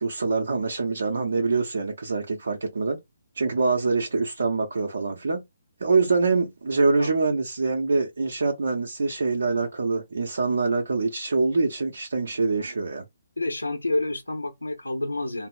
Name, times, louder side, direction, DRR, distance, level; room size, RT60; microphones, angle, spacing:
voice 1, 0.0-3.0 3.3-5.4 5.8-13.0, right 4 dB, 65° right, 0.7 m, -25 dB
voice 2, 13.4-15.5, left 2 dB, 85° left, 0.6 m, -29 dB
3.7 x 2.0 x 4.2 m
figure-of-eight pair, 135°, 0 cm